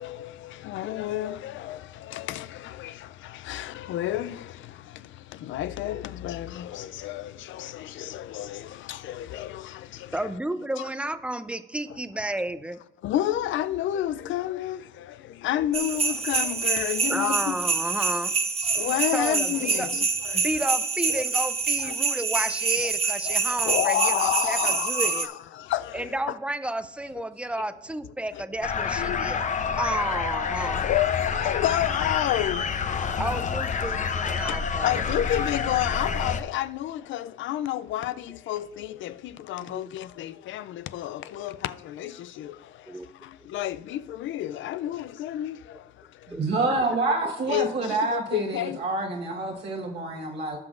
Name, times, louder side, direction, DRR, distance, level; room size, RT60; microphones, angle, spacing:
voice 1, 0.0-10.3 10.8-10.9 13.0-17.6 18.6-20.5 21.1-21.2 21.8-22.2 23.3-26.2 28.3-28.4 29.0-30.0 30.7-33.2 33.9-46.4 47.5-48.8 49.5-49.6, left 13 dB, 75° left, 0.4 m, -31 dB
voice 2, 10.1-12.8 17.1-18.3 19.1-19.9 20.3-25.3 25.9-29.5 29.8-30.8 33.2-35.0 39.6-39.9 42.9-43.1 46.3-46.4 46.7-47.3, right 1 dB, 5° right, 0.5 m, -32 dB
sound 1, 15.7-25.3, right 5 dB, 30° right, 0.8 m, -26 dB
sound 2, 28.6-36.4, left 6 dB, 40° left, 0.6 m, -28 dB
voice 3, 46.3-50.6, right 2 dB, 60° right, 1.4 m, -27 dB
17.5 x 5.9 x 2.5 m
cardioid pair, 90°, 20 cm